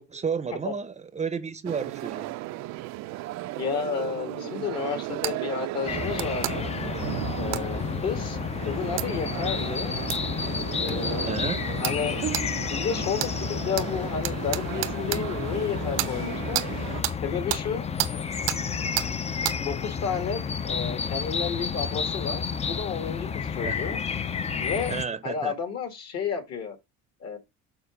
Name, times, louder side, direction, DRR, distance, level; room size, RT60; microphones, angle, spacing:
voice 1, 0.0-2.4 11.3-11.8 23.6-23.8 24.9-25.5, right 6 dB, 20° right, 0.6 m, -32 dB
sound 1, 1.6-17.0, right 17 dB, 65° right, 0.5 m, -35 dB
voice 2, 3.6-6.7 7.4-8.4 8.6-10.0 10.8-11.5 11.8-16.6 17.2-18.3 19.6-22.4 22.7-24.0 24.6-24.9 25.2-26.8 27.2-27.4, left 6 dB, 60° left, 2.2 m, -32 dB
sound 2, 5.2-5.4 6.2-6.5 7.5-7.7 9.0-9.1 10.1-10.2 10.9-11.0 11.8-12.0 12.3-12.5 13.2-13.3 13.8-13.9 14.2-15.2 16.0-16.1 16.5-16.7 17.0-17.2 17.5-17.6 18.0-18.1 18.5-18.6 19.0-19.1 19.4-19.6, right 16 dB, 85° right, 0.8 m, -29 dB
sound 3, 5.9-25.1, left 6 dB, 20° left, 0.4 m, -31 dB
7.1 x 3.9 x 5.2 m
supercardioid pair, 100°, 30 cm